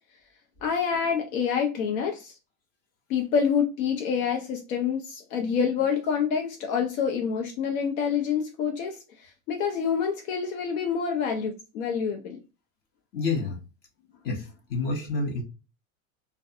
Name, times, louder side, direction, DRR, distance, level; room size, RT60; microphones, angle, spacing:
voice 1, 0.6-2.4 3.1-12.4, left 7 dB, 80° left, 0.7 m, -27 dB
voice 2, 13.1-13.6 14.2-15.4, left 3 dB, 25° left, 0.5 m, -29 dB
2.6 x 2.2 x 2.4 m
supercardioid pair, 150°, 42 cm